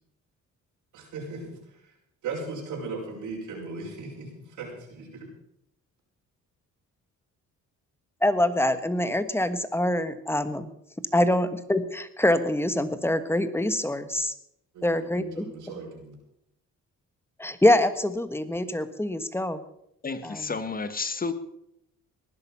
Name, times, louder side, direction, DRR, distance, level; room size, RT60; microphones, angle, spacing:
voice 1, 0.9-1.9 2.2-5.3 14.7-16.2, right 3 dB, 85° right, -5 dB, 5.4 m, -38 dB
voice 2, 8.2-10.7 11.1-14.3 14.8-15.5 17.4-19.6 20.2-20.5, left 1 dB, 10° left, 11 dB, 1.5 m, -25 dB
voice 3, 20.0-21.3, left 4 dB, 30° left, 11 dB, 1.7 m, -31 dB
19.0 x 11.0 x 5.7 m, 0.77 s
cardioid pair, 90°, 30 cm